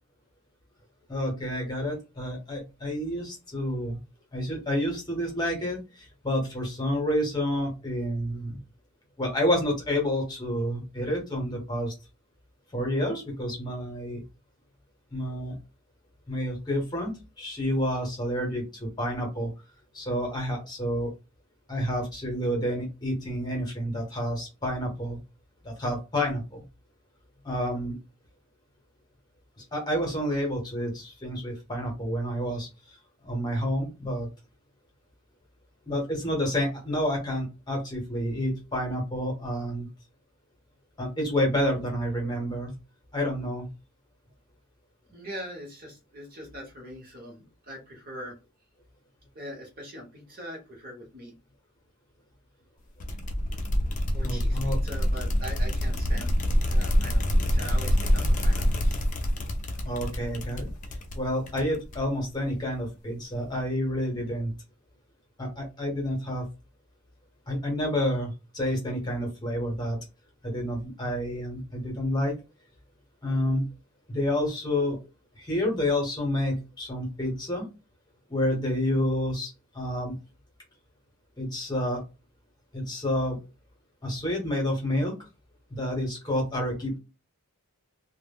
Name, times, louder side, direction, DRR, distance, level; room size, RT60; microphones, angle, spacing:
voice 1, 1.1-4.0 4.3-8.6 9.2-11.9 12.7-14.2 15.1-15.5 16.3-19.5 19.9-21.1 21.7-25.2 25.6-26.6 27.4-27.9 29.6-32.7 33.2-34.3 35.9-39.9 41.0-42.7 43.1-43.7 54.2-54.8 59.8-60.7 61.1-64.5 65.4-66.5 67.5-70.0 70.4-72.3 73.2-73.7 74.1-75.0 75.4-77.7 78.3-80.1 81.4-82.0 82.7-83.4 84.0-85.1 85.7-87.0, equal, 20° left, 0 dB, 0.8 m, -29 dB
voice 2, 45.1-48.3 49.3-51.3 54.1-56.3 56.7-59.0, equal, 40° right, 0 dB, 0.9 m, -42 dB
sound 1, 53.0-62.2, equal, 35° left, 0.4 m, -26 dB
2.1 x 2.0 x 3.4 m, 0.28 s
head